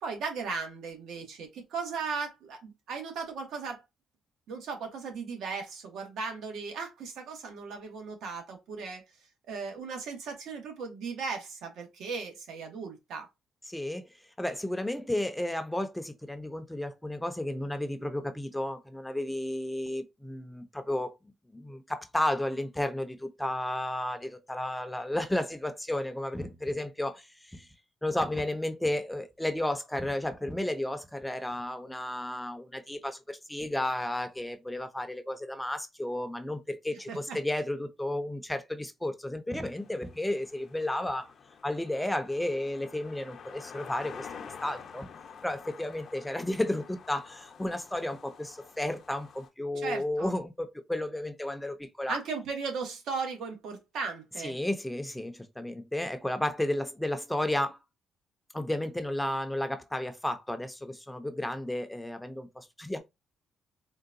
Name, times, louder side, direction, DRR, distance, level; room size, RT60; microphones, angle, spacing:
voice 1, 0.0-3.8 4.5-9.0 9.5-13.3 37.1-37.4 49.8-50.4 52.1-54.6, right 5 dB, 80° right, 1.0 m, -37 dB
voice 2, 13.7-14.1 14.4-21.1 21.5-27.7 28.0-41.3 41.6-44.3 44.6-45.1 45.4-52.2 54.4-57.8 58.5-63.0, left 1 dB, 5° left, 0.5 m, -33 dB
sound 1, 39.7-49.5, left 6 dB, 60° left, 0.6 m, -49 dB
3.7 x 2.2 x 2.5 m
cardioid pair, 90°, 0 cm